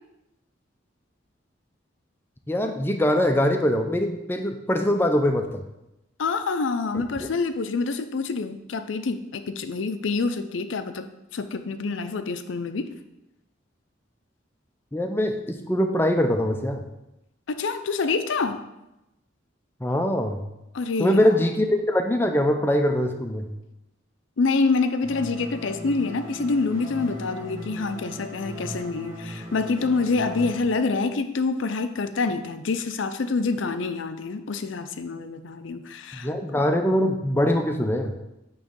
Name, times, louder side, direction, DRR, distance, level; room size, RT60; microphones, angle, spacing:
voice 1, 2.5-5.6 6.9-7.3 14.9-16.8 19.8-20.4 21.0-23.5 36.1-38.1, left 1 dB, 10° left, 5 dB, 0.5 m, -23 dB
voice 2, 6.2-11.1 11.3-12.9 17.5-18.6 20.7-21.5 24.4-36.3, left 4 dB, 75° left, 9 dB, 0.5 m, -26 dB
sound 1, 25.0-30.6, equal, 15° right, 1.3 m, -38 dB
8.7 x 3.1 x 5.2 m, 0.93 s
head